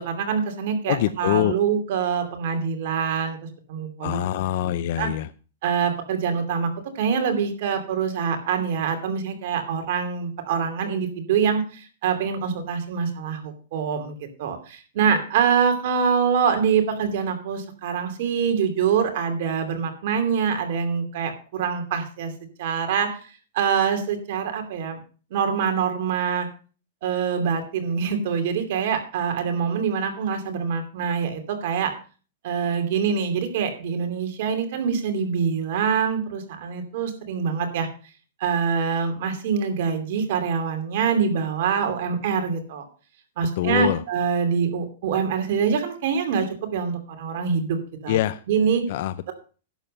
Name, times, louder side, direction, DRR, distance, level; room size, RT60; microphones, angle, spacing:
voice 1, 0.0-3.4 3.7-4.2 5.0-5.1 5.6-6.7 6.9-22.3 22.6-23.2 23.5-25.0 25.3-26.5 27.0-31.9 32.4-37.9 38.4-42.8 43.4-48.2 48.5-48.8, right 6 dB, 60° right, 6 dB, 2.7 m, -25 dB
voice 2, 0.9-1.5 4.0-5.3 43.6-44.0 48.1-48.4 48.9-49.3, left 13 dB, 55° left, 13 dB, 0.5 m, -24 dB
11.0 x 7.3 x 5.4 m, 0.37 s
supercardioid pair, 150°, 0 cm